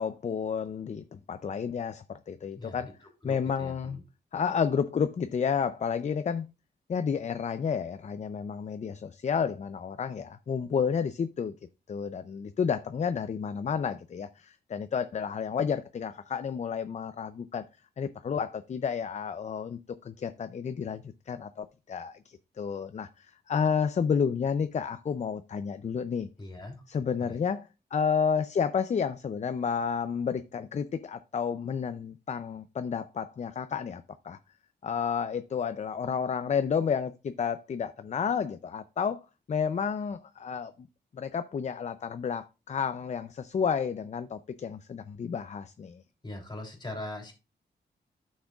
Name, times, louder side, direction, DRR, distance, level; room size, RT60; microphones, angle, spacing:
voice 1, 0.0-3.0 3.2-4.0 4.3-6.5 6.9-11.5 11.9-17.6 18.0-26.3 26.9-34.4 34.8-39.2 39.5-40.9 41.1-46.0, left 6 dB, 40° left, 0.4 m, -31 dB
voice 2, 2.6-4.0 26.4-26.7 27.2-27.4 46.2-47.3, left 1 dB, 25° left, 3.0 m, -41 dB
11.5 x 6.3 x 2.3 m
wide cardioid pair, 105°, 18 cm